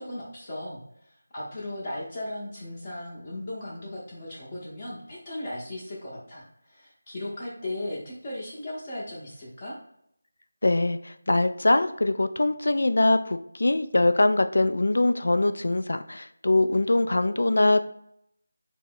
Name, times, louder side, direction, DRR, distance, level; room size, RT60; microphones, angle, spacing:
voice 1, 0.0-9.8, left 1 dB, 25° left, -6 dB, 0.8 m, -37 dB
voice 2, 10.6-17.8, left 2 dB, 60° left, 9 dB, 0.3 m, -23 dB
3.7 x 2.0 x 4.3 m, 0.72 s
figure-of-eight pair, 165°, 0 cm